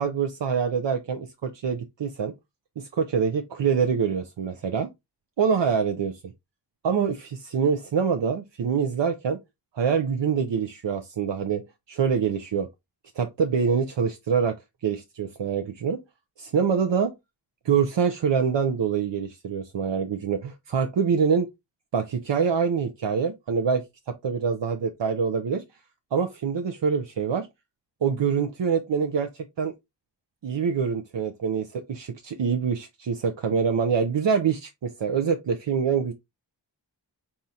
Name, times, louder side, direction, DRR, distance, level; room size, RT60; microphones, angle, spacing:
voice 1, 0.0-2.3 2.8-4.9 5.4-6.1 6.8-9.4 9.7-11.6 11.9-12.7 13.2-14.6 14.8-16.0 16.4-17.1 17.6-21.5 21.9-23.8 24.2-25.6 26.1-27.5 28.0-29.7 30.4-36.1, right 6 dB, 75° right, 0.6 m, -25 dB
4.2 x 3.6 x 2.7 m
wide cardioid pair, 45°, 44 cm